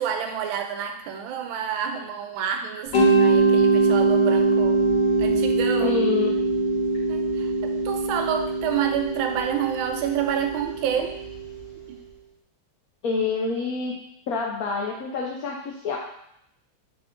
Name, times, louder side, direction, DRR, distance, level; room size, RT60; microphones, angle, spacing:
voice 1, 0.0-4.8 5.2-5.9 7.1-7.5 7.8-11.1 11.9-12.0, right 8 dB, 80° right, 5 dB, 1.4 m, -28 dB
Mallet percussion, 2.9-11.7, right 3 dB, 60° left, 1.5 m, -22 dB
voice 2, 5.8-6.3 13.0-13.9 14.3-16.0, left 4 dB, 85° left, -1 dB, 0.8 m, -27 dB
3.8 x 3.6 x 3.6 m, 0.75 s
omnidirectional pair, 2.2 m